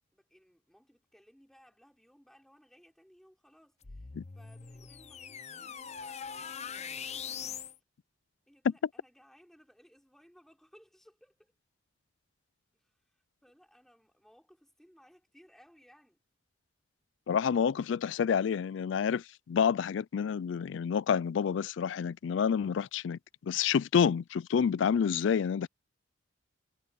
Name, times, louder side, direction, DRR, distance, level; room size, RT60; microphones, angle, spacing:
voice 1, 0.1-7.6 8.5-11.5 12.7-16.2, equal, ahead, 5.6 m, -62 dB
sound 1, 3.8-7.8, left 7 dB, 35° left, 0.7 m, -42 dB
voice 2, 17.3-25.7, left 7 dB, 70° left, 0.3 m, -28 dB
head